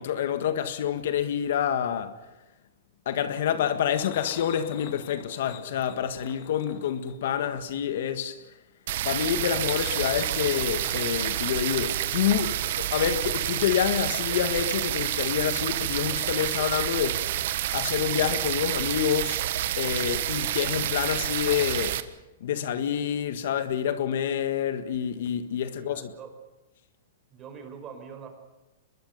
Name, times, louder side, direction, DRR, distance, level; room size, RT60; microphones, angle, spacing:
voice 1, 0.0-2.2 3.0-8.4 9.0-17.3 17.7-19.4 19.8-22.0 22.4-26.1, left 9 dB, 65° left, 1.7 m, -27 dB
sound 1, 3.9-8.1 9.3-13.6 13.8-14.0 14.3-14.4, left 10 dB, 50° left, 2.5 m, -45 dB
sound 2, 8.9-22.0, right 12 dB, 60° right, 1.3 m, -29 dB
voice 2, 25.7-26.4 27.3-28.3, right 6 dB, 25° right, 5.3 m, -43 dB
24.0 x 21.5 x 5.5 m
hypercardioid pair, 145°, 0 cm